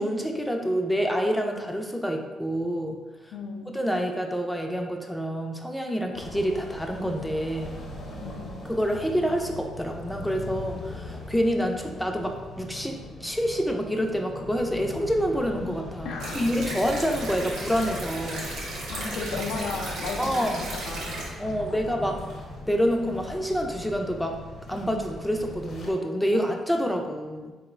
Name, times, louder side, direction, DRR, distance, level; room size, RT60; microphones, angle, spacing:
voice 1, 0.0-3.0 3.7-7.8 8.6-18.5 20.2-20.8 21.4-22.2 22.7-24.4 24.7-27.5, equal, 5° left, 2 dB, 0.3 m, -27 dB
voice 2, 3.3-3.7 8.2-8.5 16.0-16.4 18.9-20.4 20.7-21.2 21.4-22.0 26.3-26.4, left 4 dB, 80° left, 2 dB, 0.4 m, -35 dB
sound 1, 6.1-25.9, left 1 dB, 55° left, 0.8 m, -40 dB
sound 2, 16.2-21.3, right 2 dB, 85° right, 0.7 m, -35 dB
3.7 x 2.0 x 2.4 m, 1.3 s
cardioid pair, 90°, 0 cm